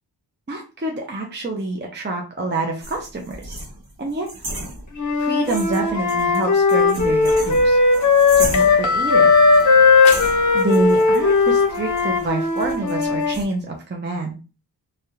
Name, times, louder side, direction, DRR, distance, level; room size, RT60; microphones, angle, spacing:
voice 1, 0.5-3.6 4.0-4.3 5.2-7.8 8.4-9.3 10.5-14.4, right 2 dB, 25° right, 1 dB, 0.6 m, -27 dB
sound 1, 2.8-5.2 5.4-8.9 9.5-9.7 10.1-13.4, right 1 dB, 55° right, 1.2 m, -34 dB
Wind instrument woodwind instrument, 4.9-8.8 9.1-13.4, left 4 dB, 40° left, 0.8 m, -17 dB
sound 2, 7.4-12.3, left 4 dB, 85° left, 0.6 m, -28 dB
3.3 x 2.3 x 2.8 m, 0.32 s
wide cardioid pair, 105°, 45 cm